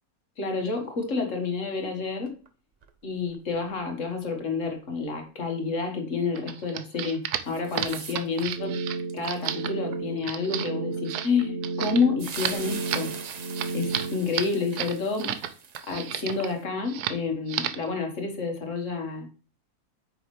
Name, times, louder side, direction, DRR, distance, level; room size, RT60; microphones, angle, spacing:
voice 1, 0.4-2.3 3.0-8.8 9.1-13.1 13.7-15.4 15.9-19.3, left 4 dB, 55° left, 4 dB, 1.8 m, -29 dB
sound 1, 2.3-2.5 2.8-2.9 3.3-3.8 7.5-8.6 9.1-9.5 10.0-10.1 11.9-12.0 12.2-16.6, right 6 dB, 65° right, 0.4 m, -42 dB
sound 2, 6.3-15.5 15.8-16.5 16.9-17.2 17.5-17.9, right 10 dB, 90° right, 1.2 m, -32 dB
sound 3, 8.6-14.2, right 3 dB, 50° right, 1.4 m, -33 dB
8.8 x 6.4 x 3.2 m, 0.38 s
omnidirectional pair, 1.6 m